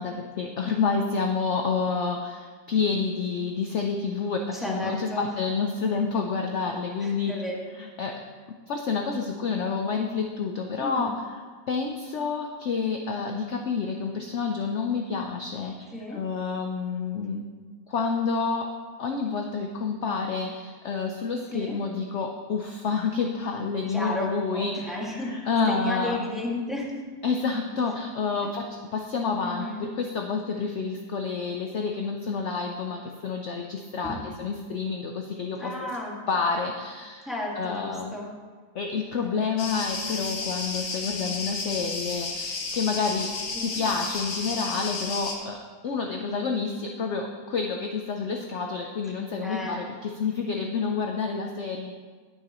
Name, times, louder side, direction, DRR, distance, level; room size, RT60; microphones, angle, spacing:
voice 1, 0.0-7.4 7.8-8.2 8.5-11.1 11.7-17.5 17.9-18.7 19.0-26.3 27.2-35.7 36.3-37.3 37.5-38.1 38.7-43.3 43.6-51.9, left 5 dB, 60° left, 3 dB, 0.8 m, -29 dB
voice 2, 4.5-5.3 7.0-7.6 10.8-11.1 15.9-16.2 21.5-21.8 23.9-25.4 25.7-27.0 29.4-29.9 34.0-34.2 35.6-36.2 37.2-38.3 39.2-39.7 43.5-43.8 49.4-49.8, left 1 dB, ahead, -4 dB, 1.7 m, -33 dB
sound 1, 39.6-45.3, left 3 dB, 80° left, 1.9 m, -32 dB
19.0 x 6.8 x 3.0 m, 1.5 s
omnidirectional pair, 1.9 m